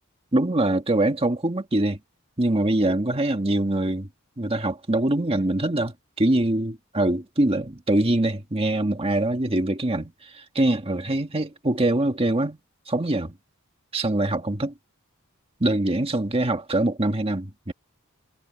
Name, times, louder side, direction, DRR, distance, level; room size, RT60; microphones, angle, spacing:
voice 1, 0.3-2.0 2.4-4.1 4.4-12.6 12.9-13.3 13.9-14.7 15.6-17.7, right 1 dB, 25° right, 1.7 m, -23 dB
head